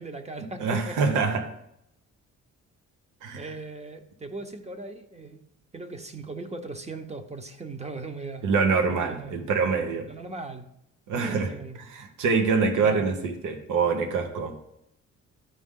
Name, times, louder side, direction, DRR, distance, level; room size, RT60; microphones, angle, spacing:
voice 1, 0.0-1.2 3.3-5.4 5.7-8.5 8.9-9.4 10.1-10.7 11.1-11.8 12.8-13.1, right 3 dB, 20° right, 7 dB, 0.9 m, -38 dB
voice 2, 0.6-1.5 3.2-3.5 8.4-10.1 11.1-11.5 11.9-14.5, right 5 dB, 85° right, 6 dB, 1.1 m, -25 dB
12.5 x 4.9 x 3.7 m, 0.78 s
cardioid pair, 90°, 30 cm